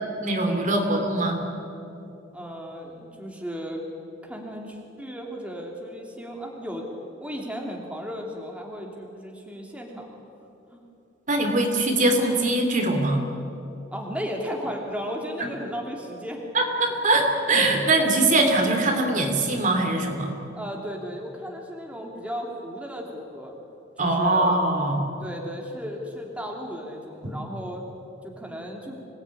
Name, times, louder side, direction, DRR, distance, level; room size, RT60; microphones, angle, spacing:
voice 1, 0.2-1.4 11.3-13.2 15.4-15.5 16.5-20.3 24.0-25.0, right 2 dB, 40° right, 3 dB, 3.2 m, -22 dB
voice 2, 2.3-3.8 4.2-6.9 7.2-10.2 10.7-10.8 13.9-16.4 20.5-23.5 24.0-24.6 25.2-27.8 28.2-29.0, equal, 5° right, 0 dB, 2.7 m, -35 dB
26.0 x 18.5 x 9.8 m, 2.7 s
head